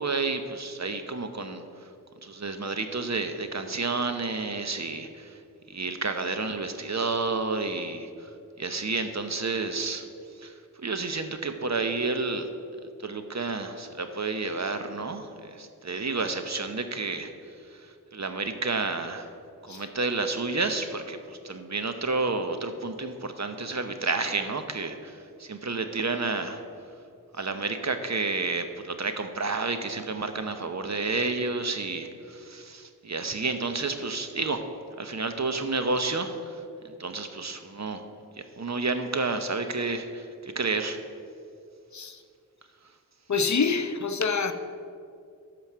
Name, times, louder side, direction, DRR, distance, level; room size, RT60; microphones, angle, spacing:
voice 1, 0.0-1.6 2.2-5.4 5.7-8.3 8.6-10.0 10.4-12.5 13.0-17.3 17.8-19.3 19.6-26.6 27.4-34.6 35.0-38.1 38.4-41.0, right 3 dB, 50° right, 1.0 m, -30 dB
voice 2, 43.3-44.5, left 5 dB, 55° left, 0.7 m, -26 dB
13.0 x 5.2 x 6.2 m
wide cardioid pair, 45°, 35 cm